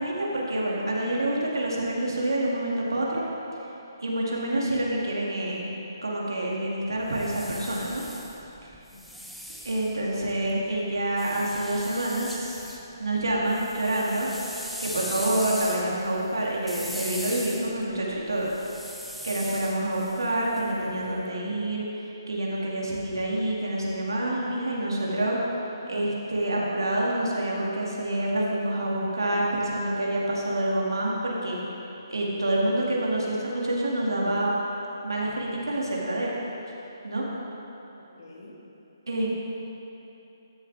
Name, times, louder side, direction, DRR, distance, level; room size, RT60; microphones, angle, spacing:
voice 1, 0.0-3.2 4.0-5.7 6.0-8.0 9.6-12.6 13.0-14.3 14.8-18.5 19.2-21.9 22.3-25.4 25.9-31.6 32.1-34.5 35.0-36.3 37.0-37.3 39.1-39.3, right 1 dB, 85° right, -4 dB, 2.3 m, -27 dB
sound 1, 7.0-10.5 11.2-12.8 13.2-21.1, equal, ahead, 0.5 m, -40 dB
voice 2, 38.2-38.6, left 2 dB, 55° left, -4 dB, 2.3 m, -48 dB
13.0 x 7.3 x 3.5 m, 3.0 s
hypercardioid pair, 150°, 2 cm